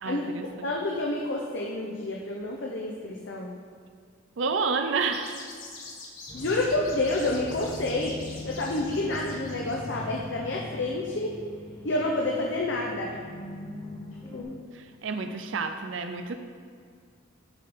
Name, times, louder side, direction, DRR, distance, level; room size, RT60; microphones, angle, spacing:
voice 1, 0.0-0.5 4.4-5.5 14.7-16.4, right 4 dB, 65° right, 7 dB, 0.5 m, -29 dB
voice 2, 0.6-3.5 6.3-11.4 11.8-13.2 14.3-14.5, left 2 dB, 60° left, -2 dB, 0.8 m, -29 dB
sound 1, 5.1-10.0, left 4 dB, 80° left, 1.6 m, -45 dB
sound 2, 6.3-14.4, left 2 dB, 25° left, 1.5 m, -41 dB
11.0 x 3.7 x 5.2 m, 2.1 s
head